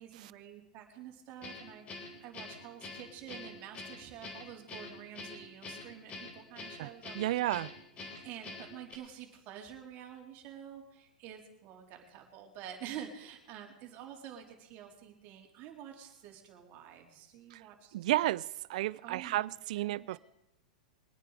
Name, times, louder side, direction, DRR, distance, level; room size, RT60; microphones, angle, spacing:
voice 1, 0.0-7.1 7.4-7.5 8.0-18.1 19.0-19.5 19.8-20.2, right 9 dB, 45° right, 3.8 m, -48 dB
Guitar, 1.4-9.0, left 3 dB, 30° left, 3.9 m, -46 dB
voice 2, 7.1-7.7 8.1-8.2 17.5-17.6 17.9-20.2, right 15 dB, 65° right, 0.5 m, -32 dB
23.5 x 9.2 x 4.9 m
hypercardioid pair, 115°, 4 cm